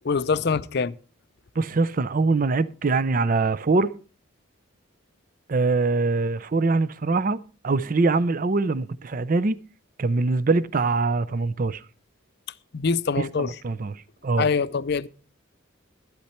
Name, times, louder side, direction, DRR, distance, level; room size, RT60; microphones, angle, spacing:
voice 1, 0.0-1.0 12.7-13.6 14.4-15.1, left 5 dB, 55° left, 0.5 m, -24 dB
voice 2, 1.6-3.9 5.5-7.4 7.6-9.6 10.0-11.8 13.4-13.9 14.2-14.5, right 3 dB, 40° right, 0.5 m, -23 dB
12.0 x 11.5 x 4.4 m
head